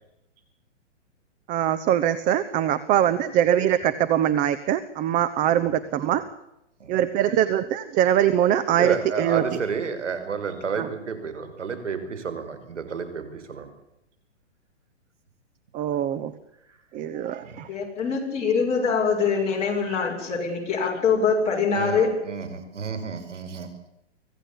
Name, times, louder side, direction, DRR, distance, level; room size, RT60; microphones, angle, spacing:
voice 1, 1.5-6.2 6.9-9.6 10.8-10.9 15.7-16.3 16.9-17.7 19.8-20.0, right 10 dB, 20° right, 12 dB, 1.0 m, -23 dB
voice 2, 8.8-13.7 17.4-17.6 21.7-23.9, right 5 dB, 85° right, 9 dB, 5.4 m, -31 dB
voice 3, 17.7-22.1, left 5 dB, 20° left, -1 dB, 7.3 m, -23 dB
25.0 x 17.0 x 8.6 m, 0.85 s
hypercardioid pair, 145°, 35 cm